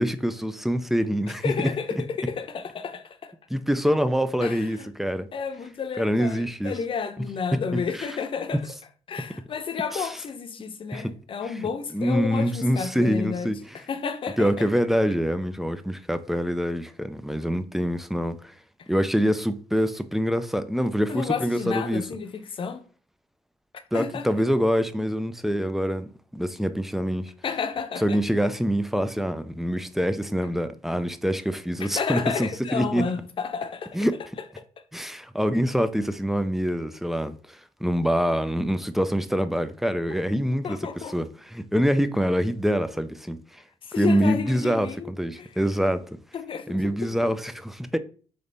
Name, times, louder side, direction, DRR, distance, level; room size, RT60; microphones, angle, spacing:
voice 1, 0.0-1.7 3.5-5.3 6.0-6.7 7.5-8.1 9.9-10.2 10.9-11.2 11.9-13.6 14.4-18.5 18.9-22.1 23.9-27.3 28.0-33.1 33.9-34.2 34.9-43.6 44.0-46.1 46.7-48.0, equal, ahead, 0.4 m, -25 dB
voice 2, 1.4-3.3 4.4-4.9 5.3-8.6 9.1-13.5 13.9-14.7 18.8-18.9 21.1-22.9 23.9-24.3 27.4-28.2 31.8-34.0 40.6-41.2 43.8-45.1 45.4-45.5 46.3-47.1, left 6 dB, 50° left, 0.7 m, -31 dB
4.0 x 3.4 x 3.9 m
cardioid pair, 80°, 12 cm